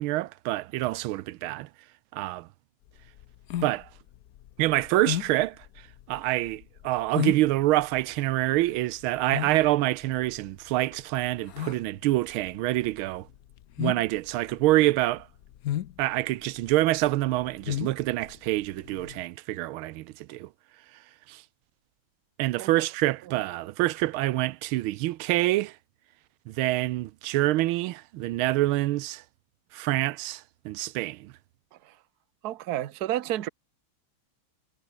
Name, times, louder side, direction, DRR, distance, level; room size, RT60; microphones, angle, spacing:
voice 1, 0.0-1.7 2.1-2.5 3.6-3.9 4.6-5.6 6.1-13.3 13.8-15.3 16.0-20.5 21.3-21.4 22.4-25.7 26.5-29.2 29.7-31.3, right 16 dB, 90° right, 1.5 m, -26 dB
sound 1, 2.9-19.2, left 12 dB, 65° left, 0.9 m, -35 dB
voice 2, 32.4-33.5, right 13 dB, 55° right, 1.3 m, -30 dB
omnidirectional pair, 2.2 m